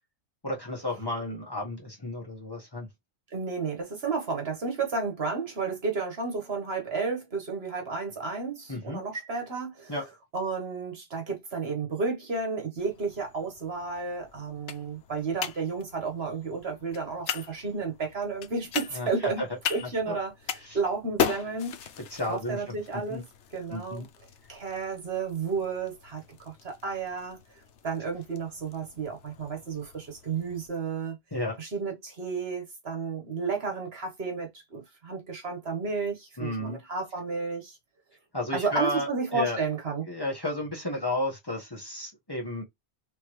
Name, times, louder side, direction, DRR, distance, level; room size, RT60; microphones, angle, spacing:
voice 1, 0.4-2.9 8.7-9.0 9.9-10.1 18.9-19.5 19.8-20.2 20.7-20.8 22.1-23.2 23.7-24.1 31.3-31.6 36.4-36.8 38.3-39.6 40.1-42.6, left 1 dB, 20° left, 1.4 m, -33 dB
voice 2, 3.3-9.9 10.3-19.4 19.7-20.3 20.7-21.7 22.3-23.2 23.5-24.0 24.5-27.4 27.8-31.2 31.6-37.8 38.5-40.1, right 4 dB, 60° right, 1.6 m, -32 dB
sound 1, 12.8-30.7, left 8 dB, 80° left, 1.0 m, -39 dB
4.4 x 3.6 x 3.2 m
omnidirectional pair, 1.2 m